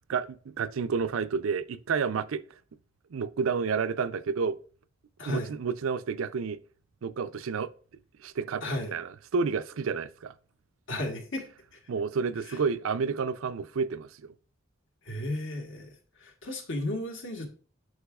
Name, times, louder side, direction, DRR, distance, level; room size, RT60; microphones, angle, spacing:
voice 1, 0.1-2.4 3.1-4.6 5.2-6.6 7.0-7.7 8.2-10.3 11.9-14.3, right 5 dB, 75° right, 0.4 m, -30 dB
voice 2, 5.2-5.5 8.6-8.9 10.9-11.5 11.7-11.8 12.5-12.6 15.0-17.5, left 1 dB, 60° left, 1.6 m, -34 dB
11.5 x 4.8 x 2.4 m
head